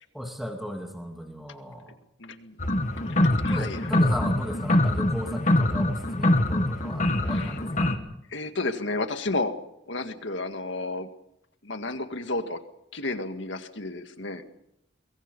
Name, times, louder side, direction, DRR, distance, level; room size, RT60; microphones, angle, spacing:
voice 1, 0.1-2.0 3.2-7.9, equal, ahead, 2 dB, 2.4 m, -36 dB
voice 2, 2.2-2.6 3.0-3.9 7.2-7.6 8.3-9.5 9.9-11.1 11.6-12.6 12.9-14.4, left 2 dB, 70° left, 7 dB, 2.0 m, -32 dB
sound 1, 2.6-8.0, left 1 dB, 40° left, 1.8 m, -24 dB
25.5 x 23.0 x 5.5 m, 0.78 s
head